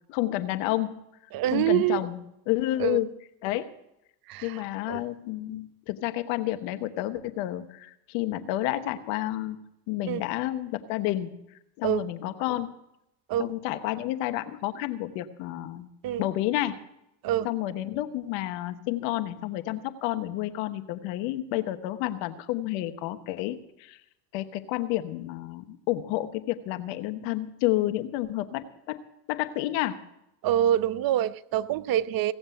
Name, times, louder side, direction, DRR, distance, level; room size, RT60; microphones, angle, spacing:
voice 1, 0.1-1.0 1.5-2.2 2.5-3.1 3.4-3.7 4.4-9.6 9.9-11.3 11.8-12.7 13.4-15.9 16.2-16.8 17.4-24.0 24.3-29.0 29.3-30.0, left 15 dB, 70° left, 10 dB, 1.2 m, -30 dB
voice 2, 1.3-2.0 2.8-3.0 4.3-5.0 10.1-10.2 11.8-12.0 13.3-13.5 16.0-16.2 17.2-17.5 30.4-32.3, right 12 dB, 50° right, 14 dB, 0.7 m, -26 dB
17.5 x 7.2 x 8.2 m, 0.84 s
hypercardioid pair, 75°, 46 cm